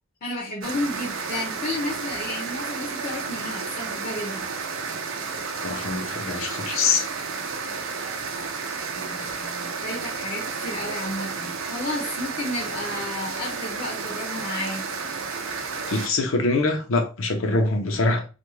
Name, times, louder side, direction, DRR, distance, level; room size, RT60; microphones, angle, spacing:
voice 1, 0.2-4.5 8.3-8.4 8.9-14.9, left 1 dB, 50° left, 0.6 m, -32 dB
sound 1, 0.6-16.1, right 5 dB, 85° right, 0.5 m, -32 dB
voice 2, 5.6-7.1 15.9-18.2, left 3 dB, 85° left, 0.7 m, -24 dB
2.5 x 2.2 x 3.1 m
head